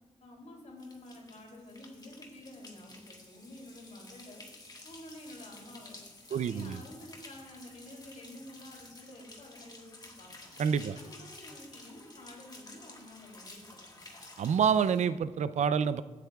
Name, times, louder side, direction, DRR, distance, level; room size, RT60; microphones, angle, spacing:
voice 1, 0.2-4.4 4.8-6.0 6.3-10.5 10.9-14.0, left 1 dB, 90° left, -1 dB, 2.8 m, -50 dB
sound 1, 0.8-15.1, left 2 dB, 35° left, 1.6 m, -52 dB
voice 2, 6.3-6.8 10.6-11.0 14.4-16.0, right 7 dB, 80° right, 14 dB, 0.4 m, -27 dB
16.5 x 8.3 x 2.3 m, 1.3 s
wide cardioid pair, 95°, 12 cm